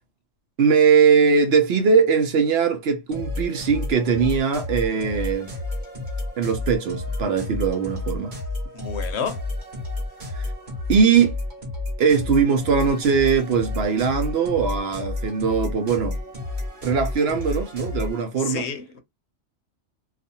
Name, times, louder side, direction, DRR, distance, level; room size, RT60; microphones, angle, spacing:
voice 1, 0.6-5.5 6.4-8.3 10.9-11.4 12.0-16.2 16.8-18.6, right 6 dB, 65° right, 0.8 m, -20 dB
sound 1, 3.1-18.2, left 2 dB, 40° right, 1.1 m, -31 dB
voice 2, 8.7-9.4 18.4-19.0, left 6 dB, 65° left, 0.9 m, -30 dB
2.4 x 2.4 x 2.7 m
omnidirectional pair, 1.3 m